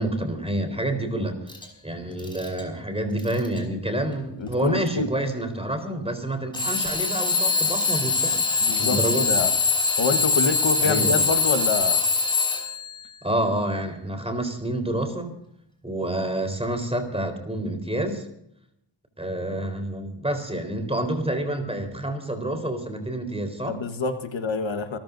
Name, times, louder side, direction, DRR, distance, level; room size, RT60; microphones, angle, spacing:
voice 1, 0.0-1.4 1.8-8.4 8.7-9.3 10.8-11.3 13.2-15.3 15.8-18.3 19.2-23.8, right 1 dB, 15° right, 6 dB, 4.1 m, -28 dB
Alarm / Clock, 1.5-1.6 2.2-2.6 3.2-3.6 4.5-4.6 6.5-12.9, left 4 dB, 10° left, 5.5 m, -23 dB
voice 2, 4.4-5.1 8.6-9.5 10.0-12.0 23.7-25.0, left 4 dB, 80° left, 7 dB, 1.5 m, -27 dB
28.5 x 14.0 x 2.7 m, 0.78 s
wide cardioid pair, 90°, 45 cm